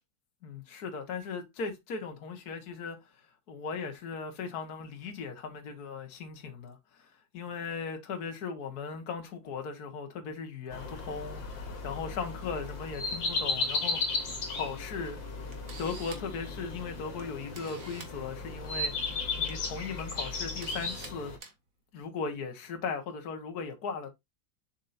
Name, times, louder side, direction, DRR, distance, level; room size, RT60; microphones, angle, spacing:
voice 1, 0.4-3.0 3.5-11.4 11.8-15.2 15.8-21.3 21.9-24.1, left 5 dB, 55° left, 1.8 m, -38 dB
sound 1, 10.7-21.4, left 3 dB, 75° left, 2.4 m, -35 dB
Camera, 15.0-15.1 15.5-16.3 17.2-17.3 17.5-18.1 19.3-19.5 19.9-20.0 20.6-21.1 21.4-21.5, right 4 dB, 50° right, 1.8 m, -46 dB
7.2 x 5.7 x 2.6 m
omnidirectional pair, 2.0 m